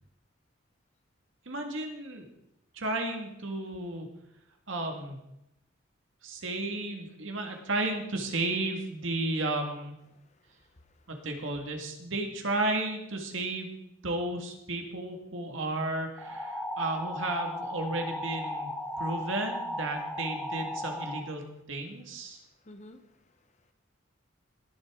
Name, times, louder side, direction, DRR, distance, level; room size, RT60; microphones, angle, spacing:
voice 1, 1.5-2.2 2.7-4.1 4.7-5.2 6.2-10.0 11.1-13.7 14.0-18.7 19.0-22.4, right 2 dB, 70° right, 3 dB, 1.9 m, -33 dB
voice 2, 10.1-11.2 18.8-19.0 22.3-23.7, left 1 dB, 35° left, 8 dB, 0.8 m, -56 dB
sound 1, 16.2-21.2, left 1 dB, 5° left, 1.1 m, -36 dB
18.5 x 8.0 x 3.7 m, 0.84 s
head